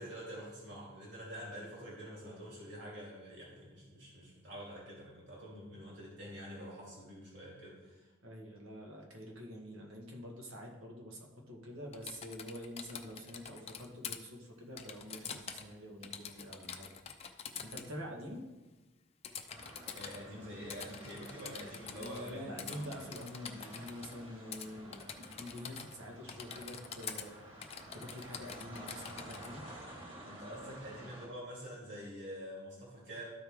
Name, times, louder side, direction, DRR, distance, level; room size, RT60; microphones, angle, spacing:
voice 1, 0.0-8.1 19.9-23.0 30.3-33.3, equal, 60° right, -5 dB, 2.5 m, -47 dB
voice 2, 8.2-16.9 17.6-18.4 21.9-29.6, equal, 85° right, 0 dB, 1.6 m, -47 dB
Typing, 11.9-14.2 14.8-15.7 16.0-17.9 19.2-20.2 20.7-22.3 22.6-24.1 24.5-24.7 24.9-26.0 26.3-27.3 27.6-29.5, left 7 dB, 30° left, 0.5 m, -46 dB
sound 1, 19.5-31.3, right 1 dB, 30° right, 1.5 m, -52 dB
12.5 x 4.7 x 3.6 m, 1.2 s
head